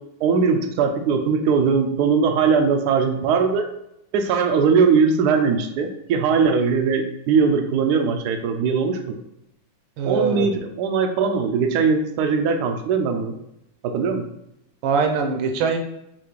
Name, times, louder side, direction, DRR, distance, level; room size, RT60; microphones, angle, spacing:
voice 1, 0.2-3.7 4.1-9.1 10.1-13.3 13.8-14.2, right 5 dB, 70° right, 5 dB, 1.0 m, -20 dB
voice 2, 10.0-10.5 14.8-15.8, right 5 dB, 90° right, 4 dB, 1.5 m, -22 dB
5.8 x 2.4 x 3.1 m, 0.81 s
omnidirectional pair, 2.1 m